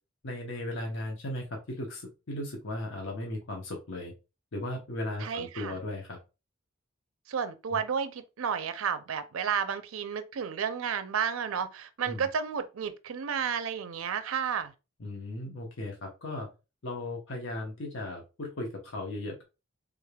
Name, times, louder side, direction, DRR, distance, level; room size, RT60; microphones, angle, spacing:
voice 1, 0.2-4.1 4.5-6.2 7.7-7.8 12.1-12.3 15.0-16.5 16.8-19.4, left 1 dB, 70° left, 0.8 m, -36 dB
voice 2, 5.2-5.8 7.3-14.7, right 7 dB, 90° right, 0.5 m, -32 dB
3.5 x 3.3 x 2.2 m
head